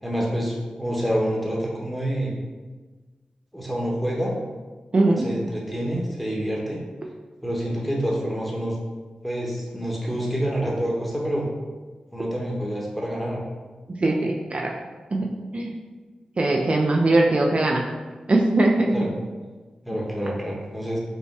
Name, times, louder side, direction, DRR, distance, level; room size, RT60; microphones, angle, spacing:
voice 1, 0.0-2.3 3.5-4.3 5.2-6.8 7.4-8.7 9.2-11.5 12.1-13.4 18.9-19.1 19.8-21.0, equal, ahead, -3 dB, 1.2 m, -27 dB
voice 2, 4.9-5.3 14.0-14.7 15.1-15.7 16.4-17.8 18.3-19.0, right 2 dB, 50° right, 0 dB, 0.4 m, -21 dB
5.2 x 2.2 x 3.3 m, 1.3 s
cardioid pair, 40°, 3 cm